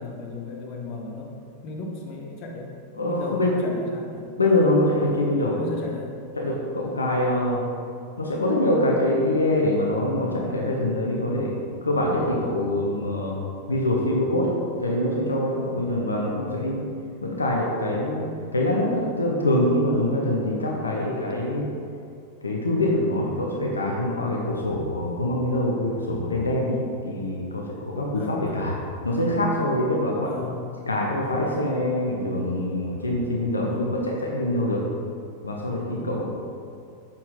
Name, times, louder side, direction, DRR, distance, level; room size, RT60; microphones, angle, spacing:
voice 1, 0.0-1.3 1.6-4.3 5.6-6.2 16.4-16.7 28.1-28.7 30.2-30.7 33.6-34.0 36.0-36.2, left 3 dB, 40° left, 0 dB, 1.1 m, -36 dB
voice 2, 3.0-3.5 4.4-5.6 6.4-7.6 8.2-13.4 13.7-16.8 17.2-18.2 18.5-21.7 22.4-28.7 29.0-30.5 30.9-34.8 35.4-36.3, left 1 dB, 75° left, -2 dB, 0.8 m, -24 dB
6.6 x 5.7 x 3.8 m, 2.4 s
figure-of-eight pair, 90°, 0 cm